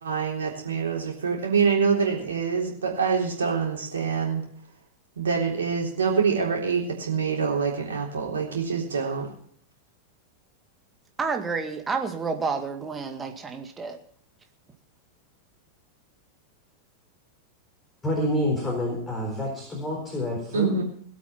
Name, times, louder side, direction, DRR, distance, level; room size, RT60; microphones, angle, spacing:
voice 1, 0.0-4.4 5.2-9.3 20.5-20.8, right 6 dB, 70° right, -1 dB, 3.6 m, -25 dB
voice 2, 11.2-14.0, right 4 dB, 15° right, 5 dB, 2.0 m, -30 dB
voice 3, 18.0-20.7, left 1 dB, 15° left, -1 dB, 4.5 m, -28 dB
19.0 x 8.4 x 5.8 m, 0.62 s
figure-of-eight pair, 90°, 0 cm